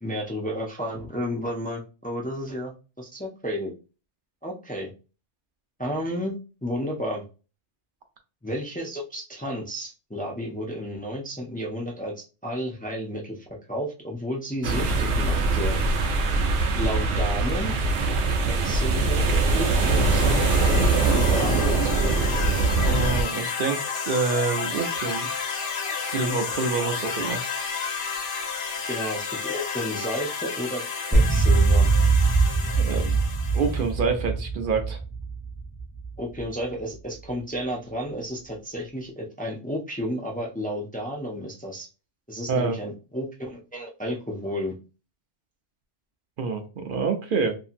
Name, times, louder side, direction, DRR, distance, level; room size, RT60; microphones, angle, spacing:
voice 1, 0.0-3.7 4.4-4.9 5.8-7.2 8.4-13.4 13.7-15.8 16.7-17.7 18.3-19.3 19.5-22.3 28.9-31.9 36.2-41.9 42.3-44.7, equal, 15° left, -1 dB, 0.3 m, -32 dB
sound 1, 14.6-23.2, right 3 dB, 80° right, 1.0 m, -22 dB
sound 2, 18.8-33.9, left 5 dB, 75° left, 1.0 m, -32 dB
voice 2, 22.8-27.4 32.8-33.2 33.5-35.0 42.5-42.7 46.4-47.6, right 4 dB, 55° right, 5 dB, 0.6 m, -27 dB
sound 3, 31.1-36.5, right 3 dB, 20° right, 0.6 m, -22 dB
2.7 x 2.7 x 2.5 m, 0.32 s
omnidirectional pair, 1.2 m